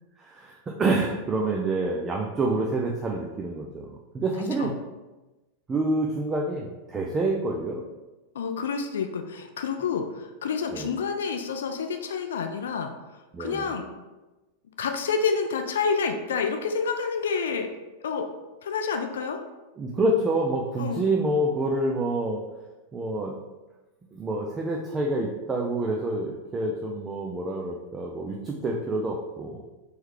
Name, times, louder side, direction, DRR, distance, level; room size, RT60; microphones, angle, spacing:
voice 1, 0.2-4.7 5.7-7.8 10.7-10.9 13.3-13.7 19.8-22.4 22.9-23.3 24.1-29.6, right 2 dB, 20° right, 0 dB, 0.4 m, -27 dB
voice 2, 8.3-12.9 13.4-13.8 14.8-17.7 18.0-18.3 18.6-19.4 20.8-21.0, left 5 dB, 60° left, 5 dB, 0.4 m, -28 dB
4.4 x 3.3 x 3.3 m, 1.1 s
figure-of-eight pair, 90°, 0 cm